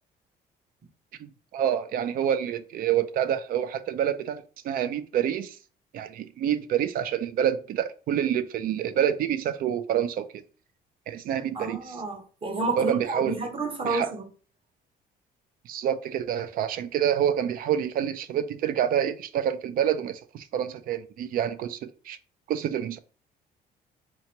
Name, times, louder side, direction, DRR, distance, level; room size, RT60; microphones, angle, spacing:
voice 1, 1.2-5.6 5.9-10.3 11.1-12.0 12.8-13.5 13.8-14.1 15.7-22.2 22.5-23.0, right 9 dB, 60° right, 0.4 m, -27 dB
voice 2, 11.5-14.2, right 3 dB, 30° right, 0.9 m, -30 dB
3.3 x 2.9 x 2.9 m
cardioid pair, 110°, 17 cm